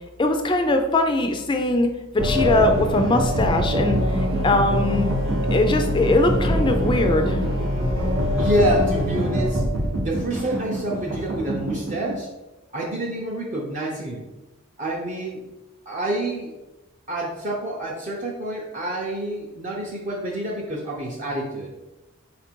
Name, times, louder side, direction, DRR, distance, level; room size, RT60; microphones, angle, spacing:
voice 1, 0.2-1.9 2.1-5.1 5.5-7.4, left 2 dB, 20° left, 5 dB, 0.4 m, -21 dB
sound 1, 2.2-12.1, equal, 65° right, 0.8 m, -23 dB
voice 2, 8.3-9.7 10.0-12.3 12.7-14.3 14.8-15.4 15.9-16.5 17.1-21.7, right 1 dB, 35° right, -3 dB, 0.5 m, -28 dB
4.1 x 2.5 x 4.4 m, 1.0 s
head